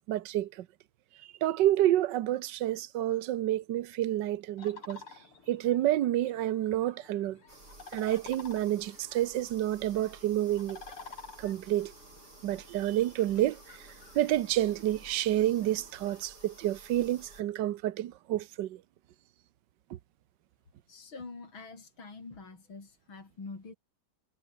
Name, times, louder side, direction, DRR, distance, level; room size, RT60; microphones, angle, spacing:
voice 1, 0.1-0.7 1.4-5.0 5.5-7.4 7.9-10.8 11.4-11.9 12.4-13.9 14.1-18.8 19.9-20.0, right 13 dB, 65° right, 1.4 m, -29 dB
sound 1, 4.6-16.3, left 5 dB, 90° left, 4.1 m, -52 dB
sound 2, 7.5-17.4, right 2 dB, 45° right, 7.1 m, -54 dB
voice 2, 20.9-23.7, left 4 dB, 70° left, 5.3 m, -45 dB
omnidirectional pair, 2.3 m